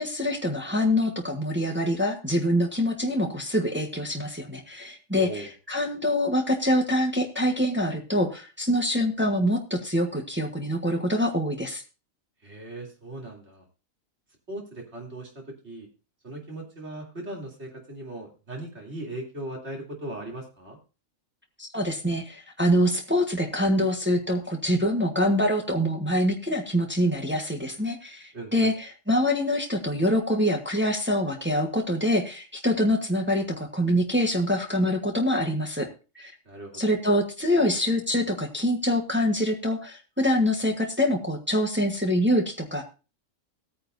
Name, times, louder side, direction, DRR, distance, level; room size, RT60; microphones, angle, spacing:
voice 1, 0.0-11.8 21.6-35.9 36.1-36.3 36.8-42.8, equal, 10° right, 2 dB, 1.4 m, -25 dB
voice 2, 5.1-5.5 12.4-13.6 14.5-15.9 16.2-20.8 28.3-28.7 36.5-36.9, right 1 dB, 55° right, -1 dB, 3.5 m, -38 dB
16.5 x 9.6 x 2.7 m, 0.32 s
omnidirectional pair, 1.4 m